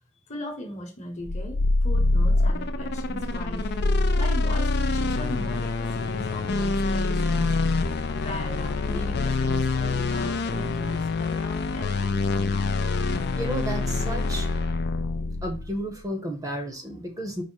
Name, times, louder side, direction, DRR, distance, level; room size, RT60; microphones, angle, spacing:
voice 1, 0.3-3.7 4.1-7.6 8.1-12.6, left 1 dB, 35° left, 1.0 m, -38 dB
sound 1, 1.2-15.8, left 3 dB, 55° left, 0.4 m, -25 dB
voice 2, 13.3-14.5 15.4-17.4, right 1 dB, 20° right, 0.7 m, -32 dB
4.9 x 2.1 x 4.4 m
head